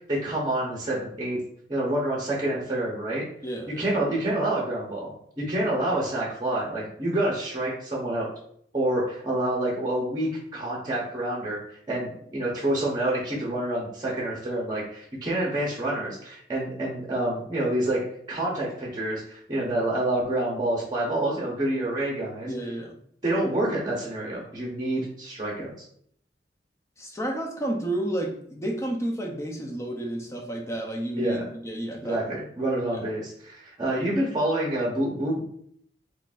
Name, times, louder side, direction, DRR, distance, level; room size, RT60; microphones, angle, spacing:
voice 1, 0.0-1.4 1.7-3.3 3.8-8.3 8.7-11.6 11.9-18.0 18.3-22.5 23.2-25.7 31.2-31.4 32.0-35.5, right 1 dB, 25° right, -4 dB, 0.8 m, -27 dB
voice 2, 3.4-3.8 22.5-22.9 27.0-32.2 32.9-33.0 33.9-34.0, right 1 dB, 15° left, 1 dB, 0.6 m, -31 dB
3.8 x 3.0 x 2.4 m, 0.65 s
head